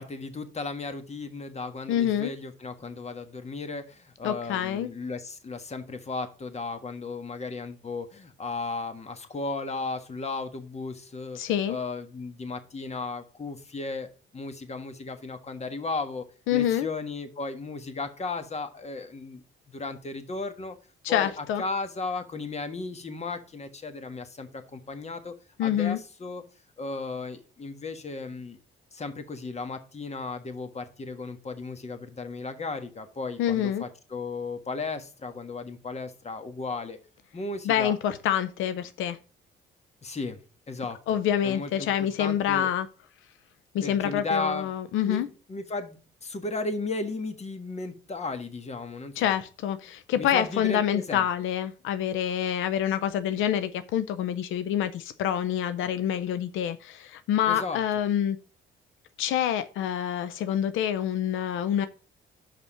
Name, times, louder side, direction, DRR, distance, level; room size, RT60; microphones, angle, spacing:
voice 1, 0.0-11.4 11.7-14.1 14.3-20.7 21.1-26.4 26.8-28.6 28.9-37.0 37.3-37.9 40.0-40.4 40.7-42.7 43.8-44.7 45.0-49.3 50.2-51.3 57.5-57.8, left 3 dB, 35° left, 8 dB, 1.5 m, -35 dB
voice 2, 1.9-2.3 4.2-4.9 11.4-11.8 16.5-16.9 21.0-21.6 25.6-26.0 33.4-33.8 37.7-39.2 41.1-42.9 43.7-45.3 49.2-58.4 59.2-61.9, left 10 dB, 85° left, 12 dB, 0.6 m, -27 dB
5.9 x 5.6 x 6.8 m, 0.36 s
cardioid pair, 90°, 20 cm